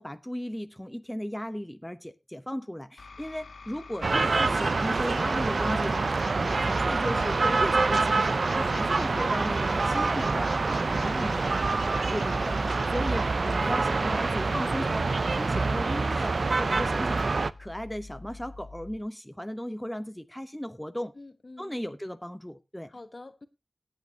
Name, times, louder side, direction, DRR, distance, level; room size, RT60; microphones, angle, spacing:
voice 1, 0.0-6.0 6.3-11.6 12.1-17.3 17.6-21.1 21.6-22.9, equal, 5° left, 0.8 m, -36 dB
sound 1, 3.0-19.0, left 3 dB, 85° left, 1.9 m, -47 dB
sound 2, 4.0-17.5, right 3 dB, 70° right, 0.5 m, -26 dB
voice 2, 10.7-11.3 21.1-21.8 22.9-23.5, left 2 dB, 50° left, 1.2 m, -47 dB
18.0 x 8.5 x 2.8 m
cardioid pair, 50°, 0 cm